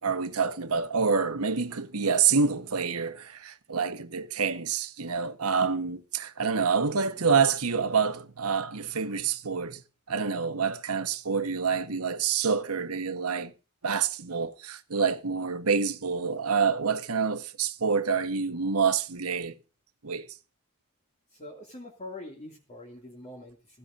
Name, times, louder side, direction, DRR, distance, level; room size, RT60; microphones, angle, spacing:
voice 1, 0.0-9.8 10.1-13.5 13.8-19.5 20.0-20.3, right 5 dB, 90° right, 1.3 m, -27 dB
voice 2, 21.3-23.8, left 1 dB, 30° left, 2.5 m, -44 dB
16.0 x 14.0 x 2.7 m
head